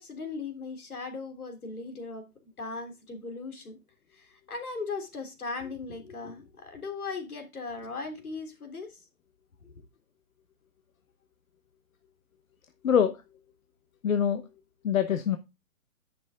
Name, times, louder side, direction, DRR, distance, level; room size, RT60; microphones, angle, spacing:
voice 1, 0.0-3.8 4.1-9.0 9.6-9.7, left 4 dB, 85° left, 3.3 m, -38 dB
voice 2, 12.8-13.2 14.0-14.4 14.8-15.4, left 8 dB, 65° left, 1.2 m, -24 dB
10.0 x 7.0 x 3.6 m
hypercardioid pair, 140°, 43 cm